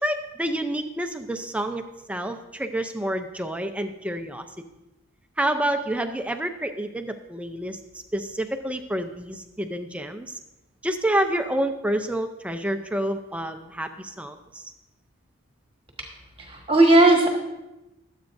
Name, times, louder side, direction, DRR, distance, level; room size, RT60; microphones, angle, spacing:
voice 1, 0.0-4.5 5.4-10.4 10.8-14.7, right 1 dB, 5° right, 6 dB, 0.5 m, -28 dB
voice 2, 16.4-17.3, right 2 dB, 25° right, 1 dB, 1.3 m, -16 dB
22.5 x 8.2 x 2.6 m, 0.99 s
head